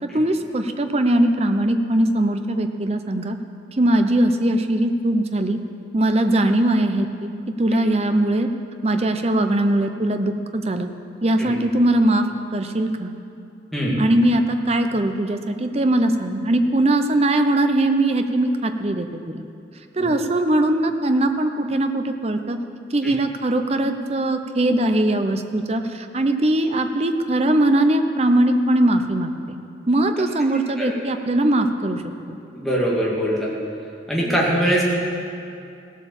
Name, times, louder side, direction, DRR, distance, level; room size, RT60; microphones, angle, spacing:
voice 1, 0.0-3.4 3.8-5.6 5.9-7.3 7.6-8.5 8.8-10.9 11.2-12.3 12.5-13.1 14.0-19.4 19.9-22.6 22.9-29.3 29.9-32.0, right 1 dB, 35° right, 7 dB, 0.7 m, -20 dB
voice 2, 32.5-33.5 34.1-34.8, equal, ahead, -6 dB, 2.3 m, -22 dB
16.0 x 8.3 x 7.1 m, 2.6 s
head